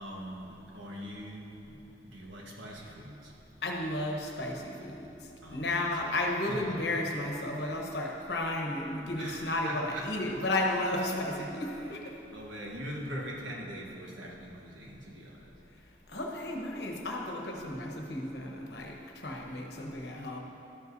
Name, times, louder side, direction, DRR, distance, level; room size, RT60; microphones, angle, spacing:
voice 1, 0.0-3.3 5.4-6.1 6.5-6.9 9.2-10.1 11.4-11.9 12.3-15.5, equal, 85° right, -2 dB, 1.3 m, -42 dB
voice 2, 3.6-5.1 5.5-12.0 16.1-19.0 19.2-20.4, left 1 dB, 60° left, 0 dB, 1.0 m, -33 dB
12.5 x 8.0 x 2.7 m, 2.9 s
head